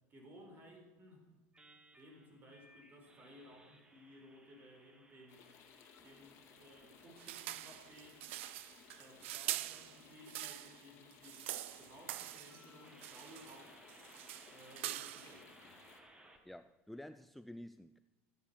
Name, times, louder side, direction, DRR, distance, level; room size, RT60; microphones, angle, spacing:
voice 1, 0.1-1.3 1.9-5.4 6.0-8.3 9.0-14.0 14.5-15.8, equal, 30° right, 3 dB, 4.5 m, -58 dB
sound 1, 1.5-16.4, right 1 dB, 15° right, 1.9 m, -64 dB
sound 2, 5.3-16.0, left 8 dB, 45° left, 2.2 m, -61 dB
sound 3, 7.2-10.8 11.1-12.6 13.0-13.6 13.9-15.4, right 15 dB, 85° right, 0.6 m, -44 dB
voice 2, 16.5-18.0, left 1 dB, ahead, 11 dB, 0.3 m, -50 dB
14.0 x 9.7 x 7.3 m, 1.2 s
supercardioid pair, 130°, 6 cm